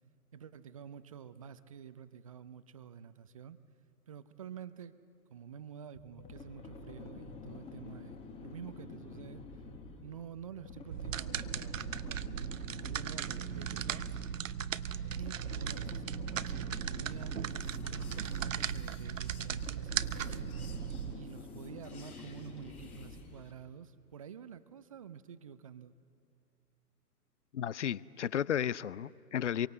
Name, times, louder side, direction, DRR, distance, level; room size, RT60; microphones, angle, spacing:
voice 1, 0.3-3.6 4.1-4.9 5.3-9.4 10.0-12.5 12.8-14.1 15.1-17.3 17.9-20.5 21.1-25.9, right 8 dB, 25° right, 15 dB, 0.5 m, -49 dB
sound 1, 5.9-23.6, left 4 dB, 10° left, 1.4 m, -49 dB
sound 2, 10.9-21.1, right 8 dB, 55° right, 0.8 m, -37 dB
sound 3, 17.2-23.5, left 4 dB, 65° left, 4.9 m, -58 dB
voice 2, 27.5-29.7, left 9 dB, 50° left, 22 dB, 0.5 m, -33 dB
25.5 x 23.5 x 7.9 m, 2.6 s
figure-of-eight pair, 120°, 47 cm